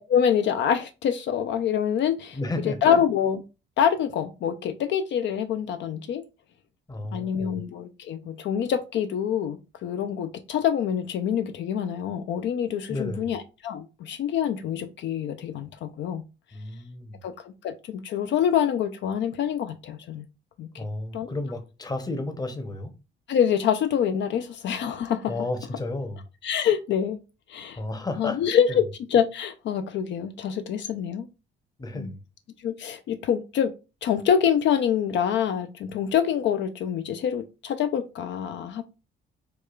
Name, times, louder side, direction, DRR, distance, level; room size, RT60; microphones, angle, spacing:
voice 1, 0.0-2.4 2.8-3.4 3.8-6.2 7.1-16.2 17.2-20.3 20.6-20.8 21.1-21.3 23.3-25.3 26.4-27.2 27.5-27.8 28.2-31.3 31.9-32.1 32.6-33.7 34.0-38.8, left 8 dB, 65° left, 0.4 m, -26 dB
voice 2, 2.3-3.0 6.9-7.6 12.9-13.4 16.5-17.2 20.8-22.9 25.3-26.2 27.7-28.8 31.8-32.2, left 2 dB, 20° left, 0.7 m, -32 dB
4.7 x 2.2 x 2.3 m
cardioid pair, 90°, 20 cm